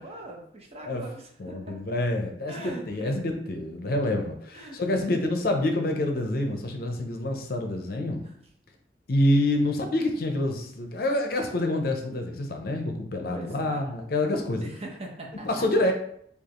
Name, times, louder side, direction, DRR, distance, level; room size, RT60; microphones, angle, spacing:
voice 1, 0.0-1.8 2.5-3.2 4.5-5.1 8.2-8.4 13.3-13.8 14.6-15.9, right 1 dB, 35° right, 0 dB, 0.8 m, -41 dB
voice 2, 1.4-8.2 9.1-14.7 15.4-15.9, left 1 dB, 55° left, 4 dB, 0.6 m, -27 dB
5.0 x 2.4 x 3.0 m, 0.66 s
head